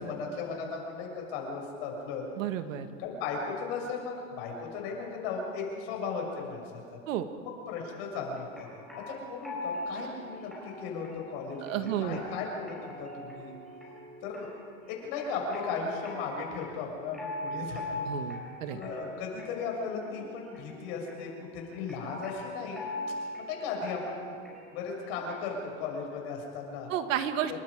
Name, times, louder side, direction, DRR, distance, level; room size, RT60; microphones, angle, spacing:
voice 1, 0.0-2.2 3.0-7.0 7.7-8.7 9.1-13.5 14.2-14.6 14.9-18.4 18.7-22.8 23.4-24.4 24.7-26.9, left 5 dB, 50° left, 0 dB, 6.8 m, -36 dB
voice 2, 2.4-2.9 7.1-7.3 11.6-12.2 18.1-18.8 26.9-27.6, right 10 dB, 75° right, 8 dB, 1.9 m, -31 dB
sound 1, 7.9-25.6, left 1 dB, ahead, 6.0 m, -42 dB
28.5 x 23.0 x 5.1 m, 2.4 s
supercardioid pair, 170°, 39 cm